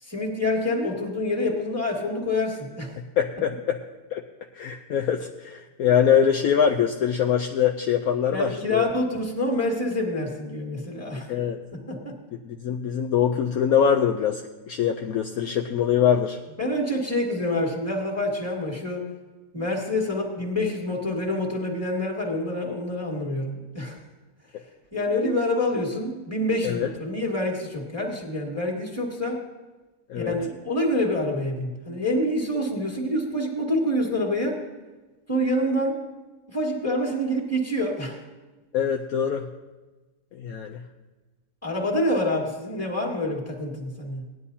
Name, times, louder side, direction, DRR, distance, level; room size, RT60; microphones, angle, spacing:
voice 1, 0.0-2.9 8.3-11.3 11.7-12.2 16.6-19.0 19.5-24.0 24.9-29.4 30.2-34.6 35.3-36.0 36.5-38.2 41.6-44.2, left 1 dB, 10° left, -2 dB, 2.1 m, -27 dB
voice 2, 3.2-3.8 4.1-4.2 4.5-8.9 11.3-11.6 12.4-14.4 14.7-16.4 26.6-26.9 30.1-30.4 38.7-39.5 40.4-40.8, left 8 dB, 70° left, 3 dB, 1.0 m, -23 dB
18.0 x 11.0 x 2.8 m, 1.2 s
omnidirectional pair, 1.8 m